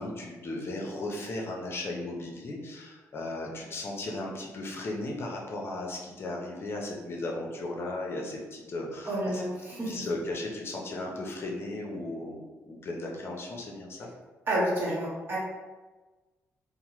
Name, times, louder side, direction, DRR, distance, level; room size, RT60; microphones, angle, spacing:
voice 1, 0.0-14.1, left 2 dB, 45° left, -1 dB, 0.6 m, -36 dB
voice 2, 9.1-9.9 14.5-15.4, right 1 dB, 40° right, -6 dB, 1.1 m, -29 dB
2.9 x 2.1 x 3.0 m, 1.2 s
cardioid pair, 105°, 6 cm